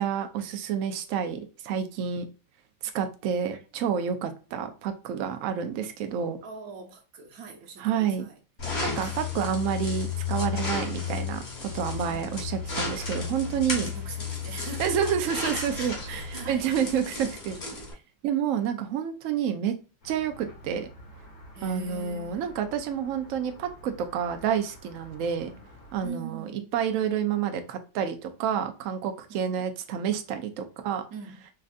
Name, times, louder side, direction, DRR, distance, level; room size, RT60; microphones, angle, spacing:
voice 1, 0.0-2.3 2.9-6.4 7.8-8.3 8.8-11.4 11.7-13.9 14.8-17.6 18.2-19.8 20.0-20.9 21.6-25.5 25.9-26.5 26.7-31.0, right 8 dB, 80° right, 0.7 m, -29 dB
voice 2, 6.4-8.4 9.0-9.2 11.9-12.4 13.4-15.2 15.7-16.8 21.5-22.5 25.5-25.6 26.0-26.7 29.3-29.7 31.1-31.4, right 5 dB, 60° right, 1.2 m, -42 dB
sound 1, 8.6-17.9, left 5 dB, 40° left, 1.3 m, -33 dB
sound 2, 20.0-26.1, equal, 65° left, 2.3 m, -50 dB
4.3 x 2.5 x 2.4 m
omnidirectional pair, 1.9 m